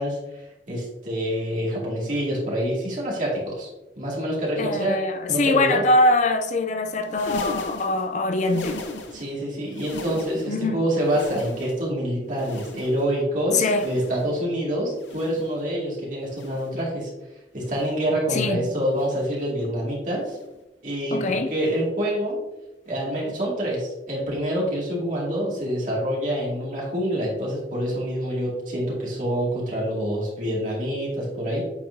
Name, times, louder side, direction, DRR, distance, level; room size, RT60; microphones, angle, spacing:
voice 1, 0.0-3.7 4.0-5.0 5.3-5.8 9.1-17.1 17.5-20.4 20.8-22.4 22.9-31.6, equal, 45° right, 2.2 m, -26 dB
voice 2, 4.6-8.8 10.5-10.8 13.5-13.9 18.3-18.7 21.1-21.5, left 2 dB, 40° left, 0.4 m, -23 dB
sound 1, 7.0-9.4 9.6-10.6 10.9-11.9 12.3-13.2 13.6-14.4 14.9-15.6 16.3-16.8 17.6-18.1 18.9-19.3 20.3-20.6 21.6-21.8 22.9-23.0, left 2 dB, 85° left, 0.8 m, -38 dB
8.3 x 4.3 x 2.7 m
head